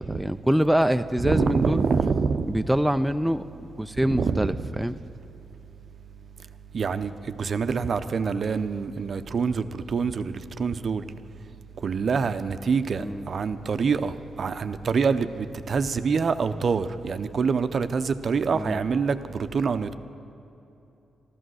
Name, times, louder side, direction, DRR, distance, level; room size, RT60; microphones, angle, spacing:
voice 1, 0.0-1.8 2.5-5.0 13.0-13.3 18.5-18.8, equal, 5° right, 9 dB, 0.3 m, -25 dB
voice 2, 1.2-2.5 4.0-4.6 6.7-11.1 11.8-19.9, right 5 dB, 55° right, 10 dB, 0.6 m, -26 dB
14.0 x 11.5 x 6.3 m, 2.9 s
cardioid pair, 80°, 0 cm